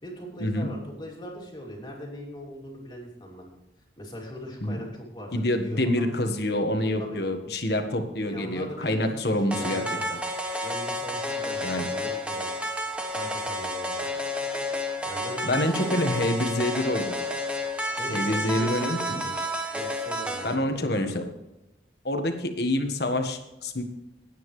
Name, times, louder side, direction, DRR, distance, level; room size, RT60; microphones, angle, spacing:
voice 1, 0.0-3.4 4.0-6.1 7.0-7.2 8.3-10.2 10.6-12.5 13.1-14.1 15.0-16.2 18.0-19.4 19.7-21.2, equal, 25° left, -2 dB, 2.8 m, -40 dB
voice 2, 5.3-9.8 10.1-10.2 11.6-11.9 15.4-17.2 18.1-19.2 20.4-21.2 22.0-23.8, left 1 dB, 65° left, 5 dB, 1.5 m, -27 dB
sound 1, 9.5-20.5, equal, 5° right, 1.3 m, -31 dB
18.5 x 9.1 x 3.3 m, 0.95 s
head